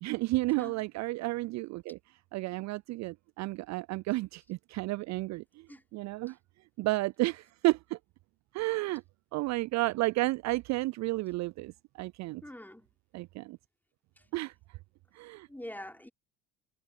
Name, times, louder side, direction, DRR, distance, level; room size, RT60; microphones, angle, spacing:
voice 1, 0.0-2.0 2.3-5.7 5.9-6.4 6.8-8.0 8.5-9.0 9.3-11.7 12.0-12.4 13.1-13.6 14.3-14.5 15.1-15.5, right 20 dB, 45° right, 0.5 m, -32 dB
voice 2, 12.4-12.9 15.5-16.1, left 1 dB, 5° left, 5.3 m, -44 dB
hypercardioid pair, 60°, 38 cm